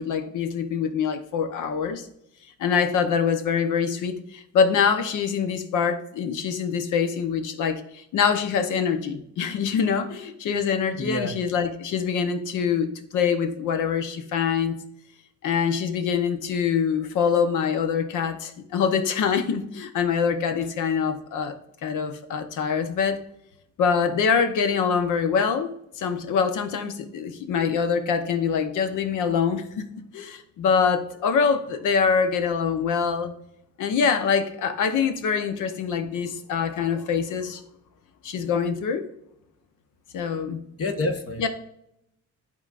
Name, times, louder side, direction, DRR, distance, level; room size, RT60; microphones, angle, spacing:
voice 1, 0.0-2.1 2.6-14.8 15.4-21.6 21.8-23.2 23.8-25.7 26.0-29.8 30.1-33.3 33.8-37.6 38.2-39.0 40.1-40.6 41.4-41.5, left 6 dB, 85° left, 9 dB, 1.0 m, -24 dB
voice 2, 11.0-11.3 40.8-41.5, left 2 dB, 50° left, 5 dB, 1.3 m, -27 dB
11.5 x 4.1 x 2.5 m, 0.80 s
cardioid pair, 90°, 30 cm